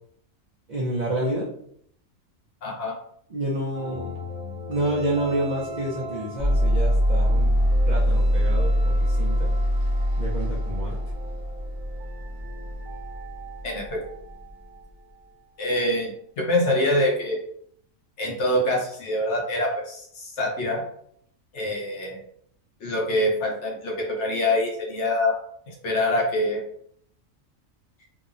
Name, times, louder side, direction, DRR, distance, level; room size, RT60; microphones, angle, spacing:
voice 1, 0.7-1.5 3.3-4.2 4.7-7.5 7.9-9.5 10.2-11.0, right 1 dB, 65° right, -4 dB, 0.4 m, -29 dB
voice 2, 2.6-3.0 13.6-14.0 15.6-17.4 18.2-20.8 21.5-22.2 22.8-25.3 25.7-26.6, left 1 dB, 65° left, -1 dB, 0.9 m, -25 dB
sound 1, 3.7-15.4, equal, 80° right, 1.0 m, -40 dB
sound 2, 6.4-14.5, equal, 25° right, 0.9 m, -23 dB
2.8 x 2.0 x 2.5 m, 0.65 s
omnidirectional pair, 1.4 m